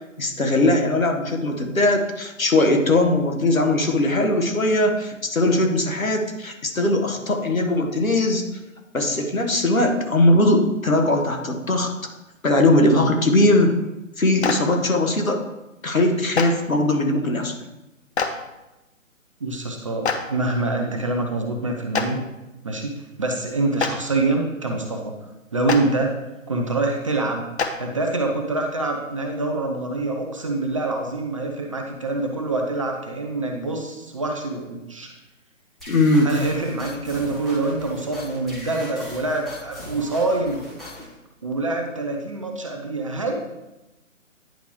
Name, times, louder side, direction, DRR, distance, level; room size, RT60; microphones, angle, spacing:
voice 1, 0.2-8.4 8.9-11.9 12.4-13.7 14.2-15.4 15.8-17.6 35.9-36.3, left 1 dB, 80° left, 4 dB, 1.5 m, -20 dB
Clapping, 14.4-14.5 16.3-16.4 18.1-18.3 20.0-20.2 21.9-22.0 23.8-23.9 25.7-25.8 27.6-27.7, left 6 dB, 55° left, 0.9 m, -22 dB
voice 2, 19.4-22.2 22.6-25.1 25.5-26.2 26.5-27.5 27.8-35.1 36.2-40.6 41.4-43.3, right 2 dB, 25° right, 2 dB, 0.6 m, -25 dB
sound 1, 35.8-41.1, left 1 dB, ahead, 1.3 m, -39 dB
10.0 x 4.9 x 3.2 m, 0.99 s
figure-of-eight pair, 140°, 40 cm